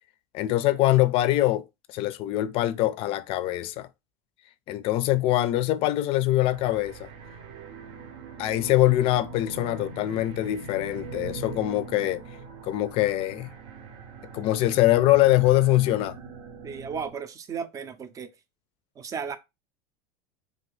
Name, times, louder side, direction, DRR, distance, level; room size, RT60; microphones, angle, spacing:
voice 1, 0.3-3.9 4.7-7.1 8.4-12.2 12.6-13.5 14.3-16.2, left 15 dB, 50° left, 0.4 m, -23 dB
sound 1, 6.4-17.2, right 4 dB, 65° right, 0.7 m, -42 dB
voice 2, 16.6-18.3 19.0-19.4, right 6 dB, 25° right, 0.5 m, -34 dB
2.8 x 2.5 x 3.1 m
supercardioid pair, 105°, 12 cm